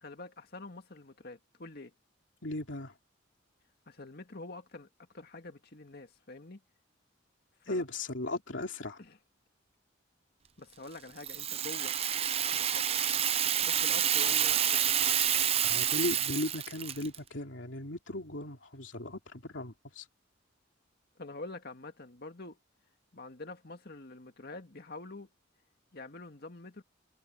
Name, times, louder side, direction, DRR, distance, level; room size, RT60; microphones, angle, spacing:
voice 1, 0.0-1.9 3.9-4.9 5.1-6.6 7.6-7.9 8.2-8.4 9.0-9.2 10.6-11.9 12.5-12.9 13.6-15.2 21.2-22.6 23.1-25.3 25.9-26.8, left 2 dB, 50° left, 2.1 m, -46 dB
voice 2, 2.4-2.9 7.7-9.0 15.6-20.1, left 2 dB, 70° left, 2.8 m, -37 dB
Rattle (instrument), 11.2-17.2, right 9 dB, 30° right, 0.7 m, -28 dB
head